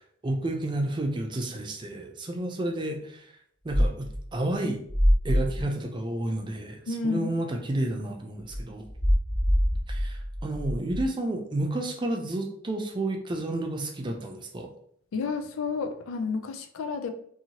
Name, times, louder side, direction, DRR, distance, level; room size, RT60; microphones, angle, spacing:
voice 1, 0.2-3.3 3.6-4.8 5.2-8.9 9.9-14.7, right 1 dB, 20° right, 3 dB, 0.4 m, -31 dB
sound 1, 3.7-4.2 4.9-5.6 8.5-11.0, equal, 5° left, 1.1 m, -25 dB
voice 2, 6.9-7.3 15.1-17.1, left 4 dB, 75° left, 7 dB, 0.4 m, -30 dB
2.7 x 2.7 x 2.8 m, 0.65 s
head